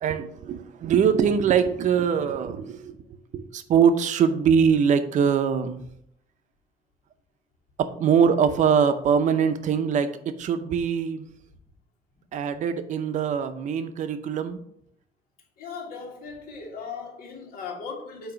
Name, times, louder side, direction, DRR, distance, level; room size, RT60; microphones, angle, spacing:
voice 1, 0.0-3.0 3.3-5.8 7.8-11.2 12.3-14.6, right 7 dB, 55° right, 10 dB, 0.6 m, -22 dB
voice 2, 15.6-18.3, left 5 dB, 90° left, -1 dB, 1.9 m, -37 dB
8.8 x 2.9 x 5.7 m, 0.72 s
cardioid pair, 175°, 15 cm